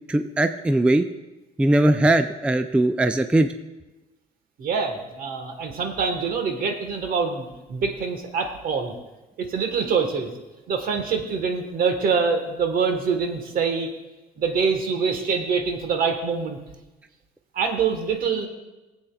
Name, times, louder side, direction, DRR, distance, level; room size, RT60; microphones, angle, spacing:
voice 1, 0.1-1.1 1.6-3.5, right 1 dB, 5° right, 9 dB, 0.3 m, -20 dB
voice 2, 4.6-8.9 9.4-10.3 10.7-13.9 14.4-16.6 17.5-18.5, right 5 dB, 60° right, 5 dB, 1.3 m, -25 dB
19.5 x 8.0 x 2.3 m, 1.1 s
cardioid pair, 110°, 17 cm